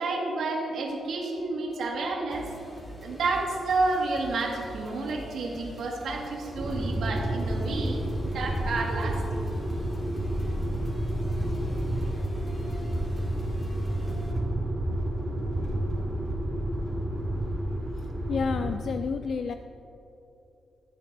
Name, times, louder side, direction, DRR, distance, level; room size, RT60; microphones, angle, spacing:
voice 1, 0.0-2.5 3.0-9.4, right 3 dB, 80° right, -1 dB, 1.8 m, -30 dB
sound 1, 2.3-14.3, equal, 30° left, 1.9 m, -44 dB
sound 2, 6.6-18.8, right 1 dB, 20° right, 1.8 m, -30 dB
voice 2, 18.3-19.5, left 5 dB, 60° left, 8 dB, 0.3 m, -29 dB
14.5 x 9.8 x 2.6 m, 2.9 s
cardioid pair, 105°, 0 cm